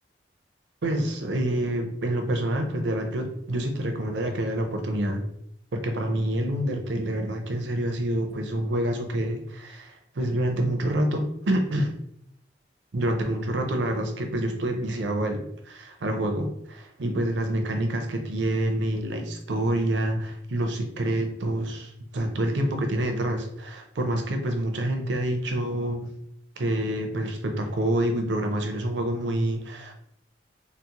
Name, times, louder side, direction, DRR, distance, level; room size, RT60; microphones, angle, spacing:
voice 1, 0.8-5.2 5.7-11.9 12.9-26.1 26.6-29.9, right 1 dB, 85° right, 4 dB, 0.6 m, -27 dB
3.9 x 2.0 x 2.8 m, 0.74 s
head